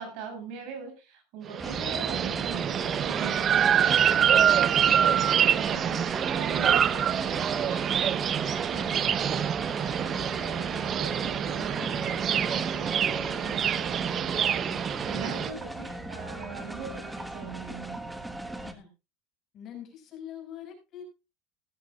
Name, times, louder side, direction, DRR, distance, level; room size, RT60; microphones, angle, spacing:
voice 1, 0.0-18.0, right 6 dB, 60° right, 5 dB, 6.7 m, -41 dB
sound 1, 1.5-15.5, right 9 dB, 30° right, 0.6 m, -26 dB
sound 2, 1.6-18.7, right 1 dB, 5° right, 1.4 m, -39 dB
sound 3, 1.7-16.9, left 7 dB, 65° left, 5.3 m, -52 dB
voice 2, 3.9-4.4 18.6-18.9 19.5-21.0, left 9 dB, 40° left, 4 dB, 5.6 m, -44 dB
17.0 x 13.0 x 2.4 m, 0.28 s
supercardioid pair, 140°, 0 cm